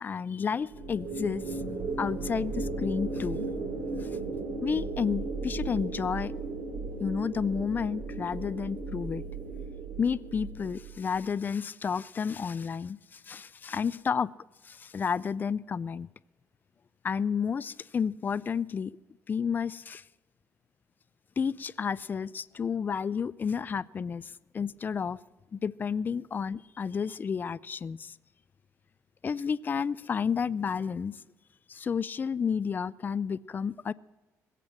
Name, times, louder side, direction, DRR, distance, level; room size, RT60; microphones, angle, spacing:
voice 1, 0.0-1.6 2.0-3.5 4.0-4.1 4.6-6.3 7.0-9.2 10.0-14.3 14.6-16.1 17.0-19.0 19.3-20.0 21.4-25.2 25.5-28.2 29.2-31.2 31.7-33.9, left 6 dB, 30° left, 19 dB, 0.4 m, -31 dB
sound 1, 0.7-11.2, right 3 dB, 70° right, 2.6 m, -36 dB
20.5 x 8.3 x 7.2 m, 1.1 s
cardioid pair, 125°, 6 cm